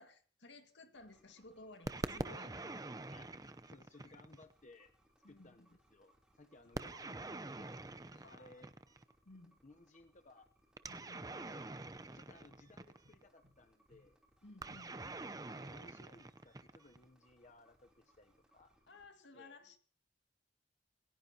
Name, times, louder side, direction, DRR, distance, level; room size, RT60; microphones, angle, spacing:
voice 1, 0.0-2.9 5.2-5.8 8.1-8.7 9.3-9.6 10.9-11.4 14.4-15.0 18.9-19.8, left 2 dB, 85° left, 6 dB, 2.0 m, -57 dB
sound 1, 0.9-19.1, right 1 dB, 5° right, 3.2 m, -72 dB
sound 2, 1.9-4.5 6.7-9.1 10.8-13.2 14.6-17.0, right 2 dB, 20° right, 0.7 m, -45 dB
voice 2, 3.7-4.9 5.3-8.7 9.6-10.5 11.0-11.6 12.1-14.2 15.5-18.7 19.3-19.6, left 2 dB, 40° left, 7 dB, 0.8 m, -61 dB
sound 3, 7.9-9.0 12.3-14.5, equal, 50° right, 7.5 m, -72 dB
27.5 x 16.5 x 2.9 m, 0.42 s
head